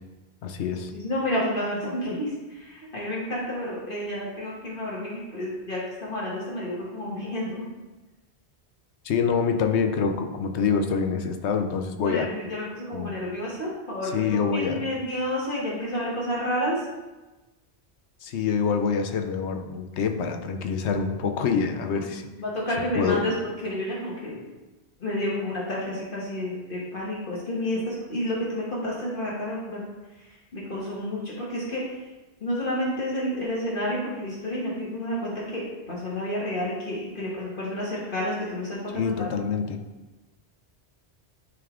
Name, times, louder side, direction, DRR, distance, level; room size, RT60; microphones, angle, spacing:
voice 1, 0.4-0.9 9.0-12.3 12.9-13.1 14.1-14.8 18.2-22.3 22.9-23.2 38.9-39.8, left 6 dB, 85° left, 6 dB, 0.9 m, -26 dB
voice 2, 0.9-7.7 12.0-16.8 21.9-23.3 23.6-24.4 25.0-29.8 30.2-31.8 32.4-39.3, left 1 dB, 55° left, -5 dB, 1.4 m, -30 dB
9.4 x 3.5 x 3.6 m, 1.1 s
omnidirectional pair, 1.1 m